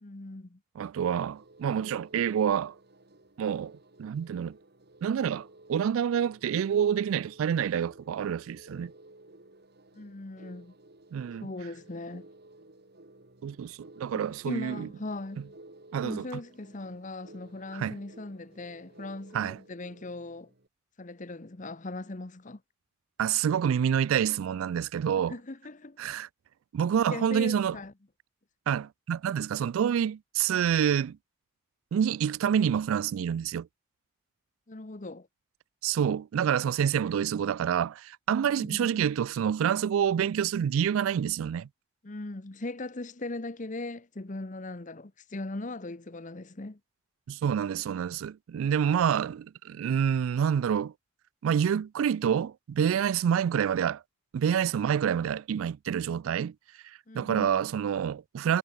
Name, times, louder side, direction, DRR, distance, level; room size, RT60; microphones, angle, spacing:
voice 1, 0.0-0.6 9.9-10.7 11.4-12.3 14.1-15.6 16.0-20.5 21.0-22.6 25.3-26.0 27.1-27.9 34.7-35.3 38.5-39.0 42.0-46.8 53.3-53.4 57.1-57.6, left 2 dB, 35° left, 1.0 m, -39 dB
voice 2, 0.8-2.8 3.4-4.6 5.0-8.9 11.1-11.5 13.4-14.9 15.9-16.3 17.7-18.0 19.3-19.6 23.2-25.3 26.0-26.3 26.7-27.8 28.7-31.2 31.9-33.7 35.8-41.7 47.3-50.9 51.4-54.0 54.3-56.5 56.8-58.6, right 8 dB, 75° right, 0.3 m, -27 dB
sound 1, 1.2-20.7, right 2 dB, 50° right, 2.3 m, -54 dB
head